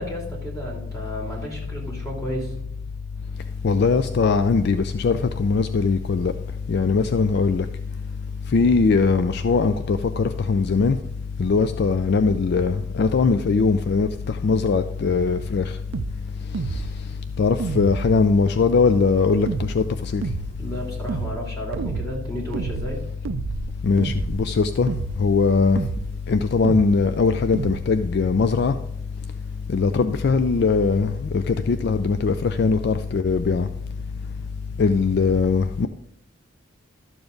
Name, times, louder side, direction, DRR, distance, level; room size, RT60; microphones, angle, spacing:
voice 1, 0.0-2.5 20.6-23.0, equal, 15° left, -3 dB, 3.0 m, -32 dB
voice 2, 3.6-6.3 6.7-7.7 8.5-11.0 11.4-15.7 16.7-16.8 17.4-20.2 23.8-24.9 25.2-25.8 26.3-28.8 29.7-33.7 34.8-35.9, left 4 dB, 55° left, 11 dB, 0.4 m, -20 dB
sound 1, 15.9-16.2 16.5-17.0 17.6-18.3 19.5-19.8 20.2-20.6 21.1-21.4 21.7-22.1 22.5-23.0 23.3-23.7 24.0-24.4 24.9-25.2 25.8-26.1 26.6-27.0 27.5-27.8, right 5 dB, 75° right, 0.4 m, -29 dB
12.5 x 7.0 x 3.9 m, 0.77 s
head